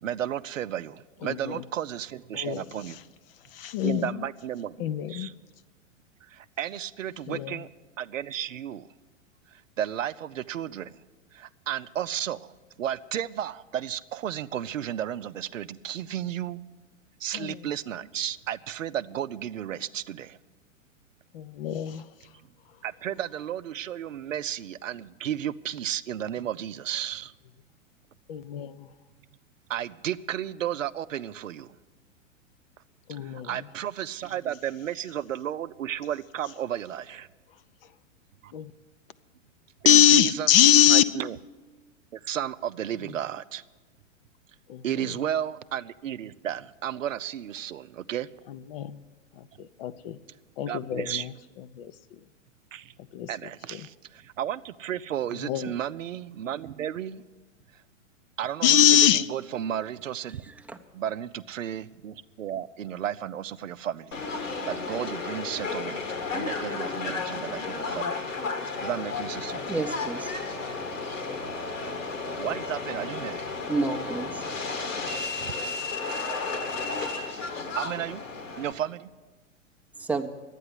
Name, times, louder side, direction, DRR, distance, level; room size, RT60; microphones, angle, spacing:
voice 1, 0.0-3.0 3.8-5.3 6.3-7.7 8.0-8.9 9.5-11.0 11.3-16.6 17.2-20.4 22.8-27.3 29.7-31.8 33.2-37.3 38.4-38.5 39.8-40.6 40.9-41.4 42.1-43.6 44.8-48.3 50.7-51.3 52.7-52.9 53.3-57.2 58.4-60.4 60.9-64.2 64.7-66.0 66.3-68.3 68.8-69.7 71.4-71.5 72.4-73.5 75.4-75.5 77.8-78.2 78.6-79.1, right 10 dB, 75° right, 14 dB, 0.6 m, -33 dB
voice 2, 3.6-4.0 4.8-5.3 7.3-7.5 21.3-22.0 28.3-28.7 33.1-33.5 38.5-38.7 39.8-41.0 44.7-44.8 48.7-49.0 49.8-50.2 50.6-51.2 51.8-51.9 53.1-53.3 55.5-55.7 58.6-59.2, left 10 dB, 45° left, 14 dB, 0.6 m, -22 dB
voice 3, 60.5-60.8 69.7-70.3 70.6-70.7 73.7-74.4 80.0-80.3, right 3 dB, 5° right, 4 dB, 0.6 m, -30 dB
Subway metro underground, 64.1-78.7, left 4 dB, 75° left, 1.9 m, -33 dB
11.5 x 9.1 x 9.7 m, 1.3 s
figure-of-eight pair, 105°, 39 cm